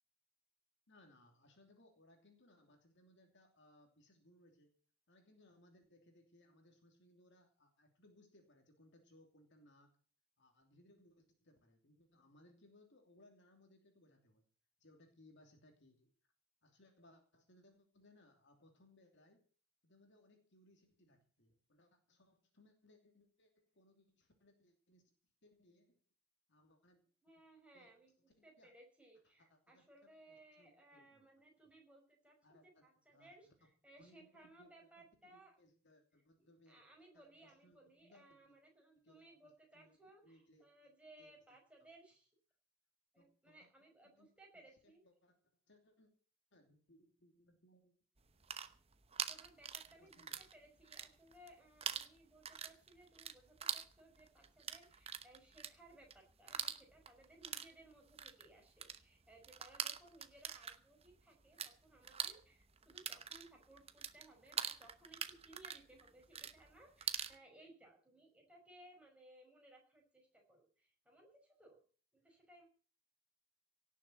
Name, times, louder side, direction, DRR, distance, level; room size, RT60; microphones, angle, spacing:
voice 1, 0.9-4.7 5.1-10.0 10.4-14.4 14.8-16.1 16.6-19.5 19.8-25.0 25.4-26.0 26.5-27.0 27.7-27.9 28.2-28.7 29.2-31.3 32.4-33.7 34.0-36.9 37.1-38.6 38.9-40.0 40.2-40.7 41.2-41.6 43.2-43.5 44.2-44.3 44.8-45.4 45.7-46.1 46.5-47.9 50.0-50.4, left 1 dB, 55° left, 4 dB, 2.9 m, -67 dB
voice 2, 27.2-28.1 28.4-35.5 36.4-42.3 43.1-45.0 49.3-71.8 72.1-72.7, right 1 dB, 5° right, 0 dB, 5.2 m, -63 dB
sound 1, 48.3-50.5 50.8-51.5 51.8-61.7 62.0-67.4, right 8 dB, 30° right, 0.9 m, -44 dB
17.5 x 7.4 x 8.0 m, 0.42 s
head